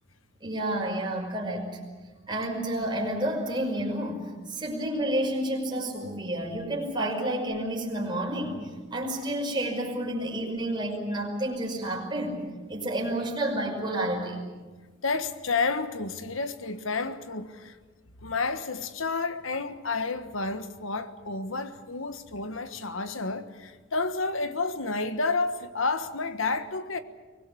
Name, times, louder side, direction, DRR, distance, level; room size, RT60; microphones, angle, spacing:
voice 1, 0.4-1.8 2.3-8.6 8.9-12.4 12.7-14.4, right 1 dB, 25° right, 5.7 m, -30 dB
voice 2, 15.0-17.8 18.2-27.0, left 3 dB, 80° left, 1.5 m, -30 dB
24.0 x 20.0 x 8.5 m
head